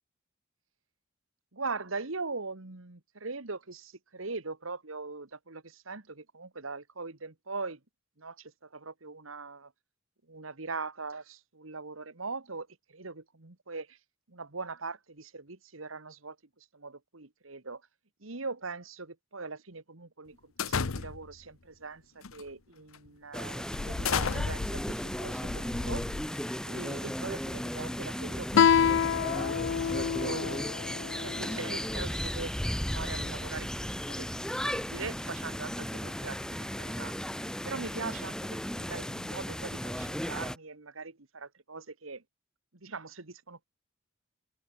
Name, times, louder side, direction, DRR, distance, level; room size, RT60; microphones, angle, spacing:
voice 1, 1.5-7.8 8.2-9.7 10.3-14.0 14.3-16.4 16.7-17.8 18.2-26.0 26.7-28.6 28.9-30.6 30.9-34.4 34.7-37.1 37.6-42.2 42.7-43.7, right 4 dB, 80° right, 1.9 m, -41 dB
sound 1, 20.6-21.4 22.2-22.5 22.9-23.1 23.7-26.6, left 5 dB, 90° left, 0.9 m, -33 dB
sound 2, 23.3-40.6, equal, 5° left, 2.4 m, -35 dB
Guitar, 28.5-31.8, left 8 dB, 60° left, 0.3 m, -27 dB
open air
head